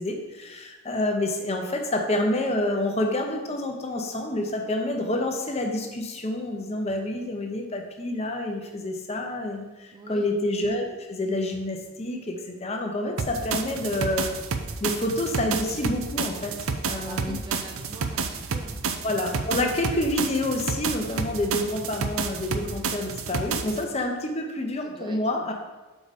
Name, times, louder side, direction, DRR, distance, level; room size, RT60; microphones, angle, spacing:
voice 1, 0.0-14.3 14.8-16.6 16.9-17.4 19.0-25.5, left 1 dB, 30° left, 3 dB, 0.8 m, -28 dB
voice 2, 9.9-10.3 16.8-18.8 24.8-25.5, right 1 dB, 20° right, 3 dB, 0.3 m, -43 dB
sound 1, 13.2-23.8, right 4 dB, 75° right, 0.5 m, -30 dB
6.6 x 4.8 x 4.1 m, 1.2 s
head